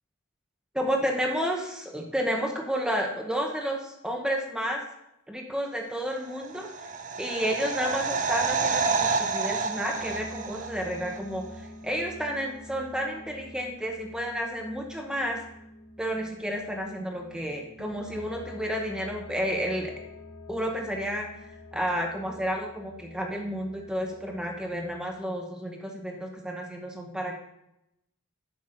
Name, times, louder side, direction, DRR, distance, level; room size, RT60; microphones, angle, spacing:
voice 1, 0.7-1.6 1.9-4.8 5.3-6.7 7.2-15.4 16.0-19.9 20.5-21.3 21.7-27.4, equal, 5° right, 1 dB, 0.8 m, -31 dB
sound 1, 6.3-11.2 11.4-11.5, right 4 dB, 35° right, 0.6 m, -29 dB
sound 2, 9.8-24.9, left 2 dB, 60° left, 1.6 m, -46 dB
9.7 x 6.0 x 3.8 m, 0.83 s
head